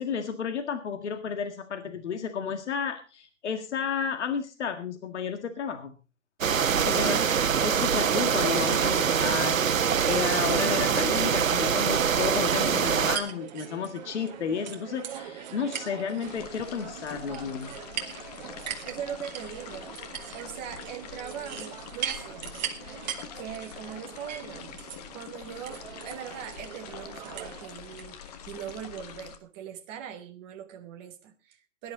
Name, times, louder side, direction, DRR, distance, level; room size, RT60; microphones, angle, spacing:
voice 1, 0.0-5.9 6.9-7.2 7.6-17.7, left 6 dB, 60° left, 7 dB, 1.9 m, -32 dB
sound 1, 6.4-13.2, right 7 dB, 85° right, 1.1 m, -24 dB
voice 2, 6.7-7.3 18.8-19.9 20.3-22.9 23.4-31.9, right 9 dB, 10° right, 4 dB, 0.5 m, -41 dB
sound 2, 12.9-28.1, right 9 dB, 35° right, 1.6 m, -40 dB
sound 3, 16.2-29.4, left 8 dB, 30° left, 1.2 m, -45 dB
17.5 x 10.5 x 3.9 m, 0.33 s
hypercardioid pair, 150°, 39 cm